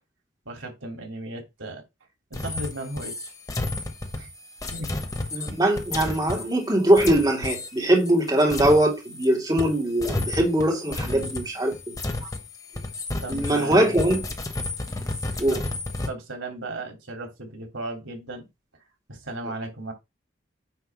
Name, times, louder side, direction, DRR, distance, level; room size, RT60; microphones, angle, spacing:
voice 1, 0.4-1.8 2.3-3.3 4.1-4.3 4.7-4.9 6.2-6.3 11.0-11.3 13.2-13.9 15.5-15.6 16.1-18.5 19.1-19.9, right 2 dB, 90° right, 3.3 m, -35 dB
sound 1, 2.3-9.3 9.6-16.1, left 2 dB, 20° left, 1.0 m, -32 dB
voice 2, 5.3-11.9 13.3-14.2 15.4-15.6, right 1 dB, 20° right, 2.1 m, -21 dB
9.2 x 3.3 x 6.0 m
head